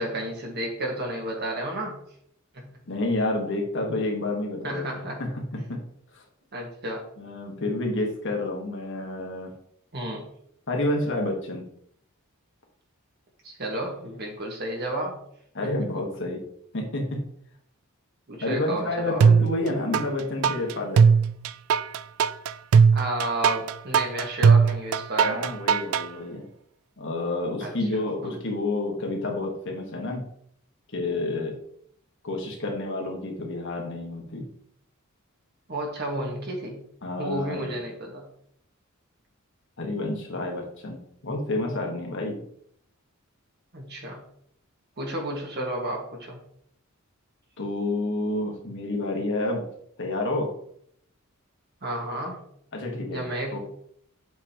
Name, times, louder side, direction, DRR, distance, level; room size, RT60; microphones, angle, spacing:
voice 1, 0.0-2.0 2.5-2.7 4.6-5.2 6.5-7.1 9.9-10.3 13.4-15.2 15.9-16.0 18.3-19.3 22.9-25.5 27.6-28.3 35.7-36.8 37.2-38.3 43.7-44.2 45.0-46.4 51.8-52.4 53.1-53.6, right 1 dB, 50° right, 1 dB, 1.7 m, -32 dB
voice 2, 2.9-4.9 5.2-5.3 5.7-5.8 6.1-6.2 7.2-9.5 10.7-11.6 15.5-16.4 16.7-17.2 18.4-21.0 25.2-26.4 27.0-30.3 30.9-31.6 32.2-34.5 37.0-37.7 39.8-42.4 47.6-49.6 50.0-50.5 52.7-53.2 53.5-53.6, left 2 dB, 60° left, 1 dB, 1.5 m, -29 dB
sound 1, 19.2-20.0 20.4-26.1, right 6 dB, 70° right, 0.3 m, -19 dB
7.9 x 4.9 x 3.0 m, 0.67 s
head